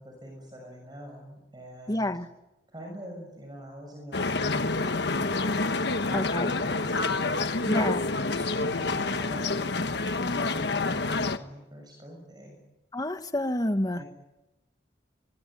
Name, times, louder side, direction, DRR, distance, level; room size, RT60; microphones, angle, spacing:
voice 1, 0.0-2.2 2.7-5.6 5.8-7.5 8.3-12.6 13.9-14.0, equal, 25° right, 2 dB, 6.8 m, -45 dB
voice 2, 1.9-2.2 6.1-6.5 7.7-8.0 12.9-14.0, left 1 dB, 20° left, 8 dB, 1.4 m, -28 dB
sound 1, 4.1-11.4, left 3 dB, 70° left, 1.3 m, -28 dB
24.0 x 23.0 x 9.3 m, 0.98 s
head